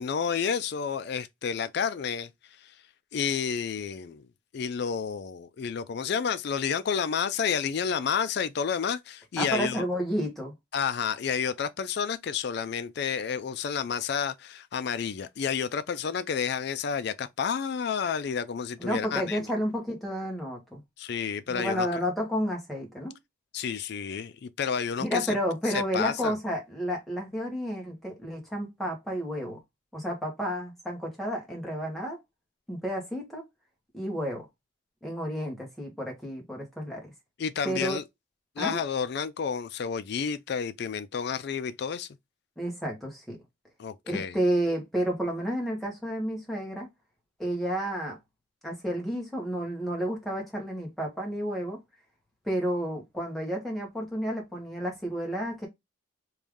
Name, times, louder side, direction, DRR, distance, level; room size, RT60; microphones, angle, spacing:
voice 1, 0.0-2.3 3.1-4.2 4.5-9.8 10.7-19.5 21.0-21.9 23.5-25.3 25.9-26.3 37.4-38.0 38.6-42.1 43.8-44.4, left 7 dB, 55° left, 0.3 m, -30 dB
voice 2, 9.4-10.5 18.8-20.8 21.5-23.1 25.0-29.6 29.9-32.2 32.7-33.4 33.9-34.4 35.0-37.0 37.6-38.0 38.6-38.8 42.6-43.4 44.0-46.9 47.4-48.2 48.6-51.8 52.4-55.7, equal, ahead, 1.2 m, -31 dB
3.3 x 2.6 x 3.5 m
head